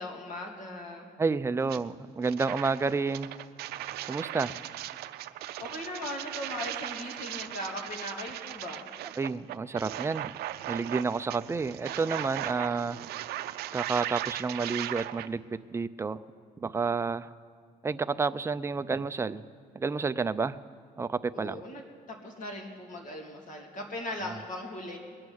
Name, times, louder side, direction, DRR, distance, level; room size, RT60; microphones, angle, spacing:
voice 1, 0.0-1.0 5.6-8.8 21.3-25.0, left 1 dB, 50° left, 0 dB, 2.9 m, -39 dB
voice 2, 1.2-3.3 4.1-4.5 9.2-10.3 10.7-13.0 13.7-15.4 15.7-16.2 16.6-17.3 17.8-19.4 19.7-20.6 21.0-21.6 24.3-24.4, right 4 dB, 15° right, 12 dB, 0.4 m, -30 dB
sound 1, 1.7-1.8 2.2-15.3, right 14 dB, 70° right, 0.5 m, -38 dB
21.5 x 8.8 x 6.3 m, 2.2 s
cardioid pair, 110°, 17 cm